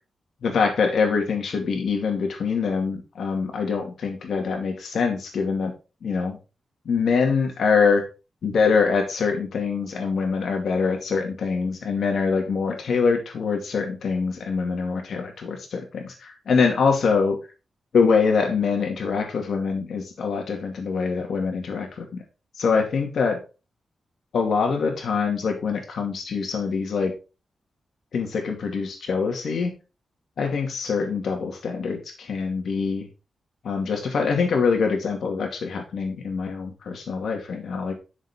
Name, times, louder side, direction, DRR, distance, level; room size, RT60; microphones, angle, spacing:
voice 1, 0.4-5.7 6.0-6.4 6.8-8.0 8.4-17.4 17.9-22.2 22.6-23.4 24.3-27.1 28.1-29.7 30.4-33.1 33.6-38.0, left 5 dB, 75° left, 3 dB, 2.3 m, -24 dB
7.4 x 6.5 x 3.7 m, 0.31 s
wide cardioid pair, 105°, 0 cm